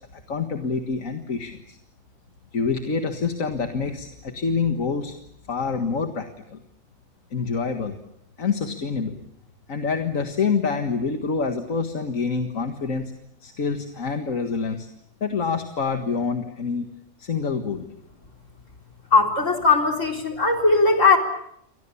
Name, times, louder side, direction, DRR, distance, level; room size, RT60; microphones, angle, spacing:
voice 1, 0.3-1.8 2.5-5.2 5.5-6.6 7.3-8.0 8.4-9.2 9.7-13.1 13.4-14.9 15.2-16.9 17.2-17.9, left 5 dB, 90° left, 5 dB, 2.1 m, -26 dB
voice 2, 19.1-21.2, left 4 dB, 70° left, 3 dB, 4.2 m, -18 dB
29.0 x 24.5 x 7.1 m, 0.77 s
omnidirectional pair, 1.3 m